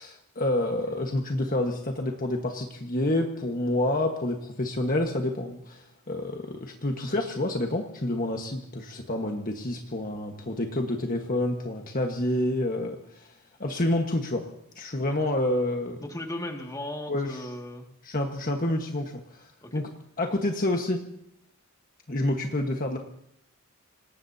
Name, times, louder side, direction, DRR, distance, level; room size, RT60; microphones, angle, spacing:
voice 1, 0.0-13.3 13.6-14.4 14.7-16.0 17.1-17.5 18.0-19.9 20.2-21.0 22.1-23.0, left 1 dB, 40° left, 3 dB, 1.4 m, -28 dB
voice 2, 16.0-17.9 19.6-19.8, left 1 dB, 15° left, 2 dB, 2.1 m, -36 dB
27.0 x 18.5 x 2.8 m, 0.76 s
head